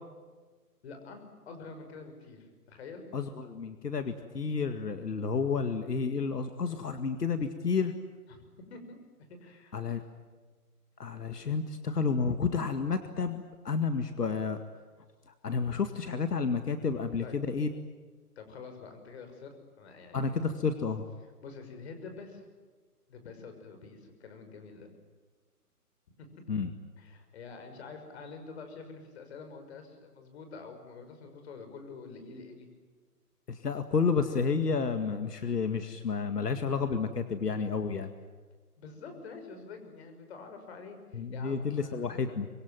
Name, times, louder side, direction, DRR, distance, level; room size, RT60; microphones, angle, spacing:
voice 1, 0.8-3.0 8.3-8.4 8.7-9.0 9.4-9.7 17.2-17.4 18.4-20.5 21.4-22.4 23.1-24.9 26.2-26.3 27.0-32.7 38.8-42.2, left 4 dB, 40° left, 6 dB, 6.0 m, -47 dB
voice 2, 3.1-7.9 9.7-10.0 11.0-14.6 15.4-17.7 20.1-21.0 26.5-26.7 33.5-38.1 41.1-42.5, left 5 dB, 80° left, 8 dB, 2.1 m, -30 dB
26.0 x 22.5 x 9.3 m, 1.4 s
hypercardioid pair, 150°, 47 cm